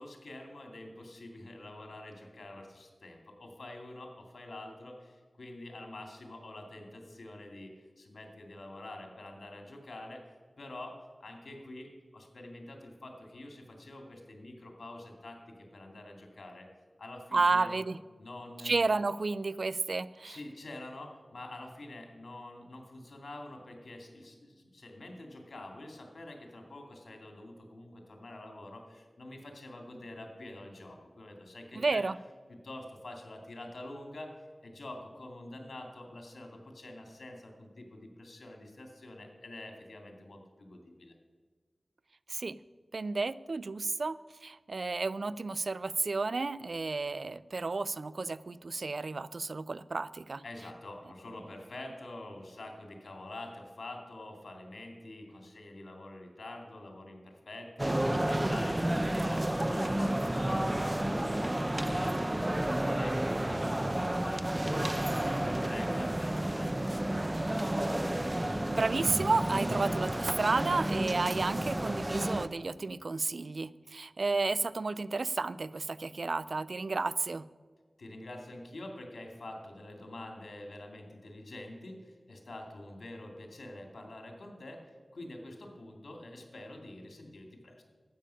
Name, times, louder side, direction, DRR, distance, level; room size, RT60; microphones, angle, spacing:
voice 1, 0.0-16.7 17.0-17.8 18.2-18.7 20.2-32.0 32.5-34.3 34.6-41.2 50.4-67.2 78.0-87.8, left 1 dB, 85° left, 2 dB, 2.1 m, -47 dB
voice 2, 17.3-18.0 18.6-20.4 31.8-32.2 42.3-42.6 42.9-50.4 68.3-77.5, right 3 dB, 70° right, 17 dB, 0.4 m, -32 dB
sound 1, 57.8-72.5, right 1 dB, 20° right, 0.6 m, -31 dB
12.5 x 8.7 x 5.6 m, 1.5 s
wide cardioid pair, 55°, 0 cm